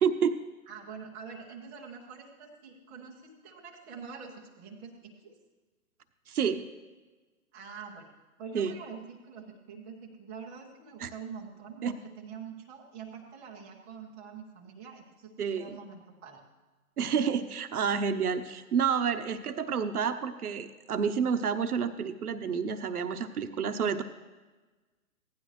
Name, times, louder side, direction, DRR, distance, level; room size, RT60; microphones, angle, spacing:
voice 1, 0.0-0.4 6.3-6.6 8.5-8.7 11.0-11.1 11.8-11.9 15.4-15.8 17.0-24.0, right 6 dB, 85° right, 10 dB, 0.8 m, -29 dB
voice 2, 0.7-5.4 7.5-8.1 8.4-16.5, right 6 dB, 5° right, -5 dB, 0.4 m, -45 dB
16.0 x 10.5 x 3.1 m, 1.3 s
hypercardioid pair, 135°, 44 cm